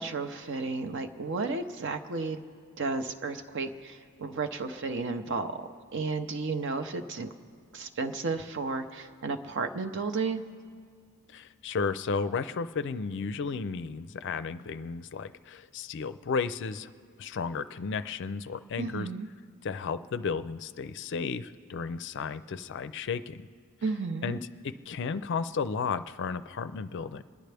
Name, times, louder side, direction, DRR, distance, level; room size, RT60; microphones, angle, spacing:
voice 1, 0.0-2.4 2.8-7.3 7.7-10.4 18.8-19.3 23.8-24.4, right 3 dB, 55° right, 6 dB, 0.7 m, -33 dB
voice 2, 11.3-16.9 17.2-19.1 19.6-23.4 24.2-27.2, left 5 dB, 55° left, 13 dB, 0.4 m, -33 dB
28.0 x 10.5 x 3.4 m, 2.1 s
head